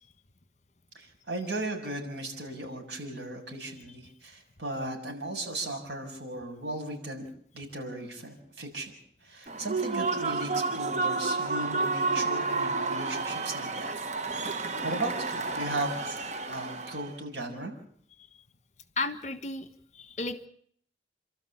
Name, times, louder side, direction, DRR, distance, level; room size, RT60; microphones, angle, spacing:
voice 1, 1.0-7.2 7.5-8.9 9.2-14.1 14.4-17.7, right 2 dB, 80° right, 2 dB, 7.0 m, -37 dB
Human voice / Cheering / Applause, 9.5-17.1, right 3 dB, 40° right, 1.0 m, -31 dB
voice 2, 19.0-19.7 19.9-20.5, left 3 dB, 40° left, 11 dB, 1.4 m, -33 dB
29.0 x 13.0 x 8.7 m, 0.62 s
head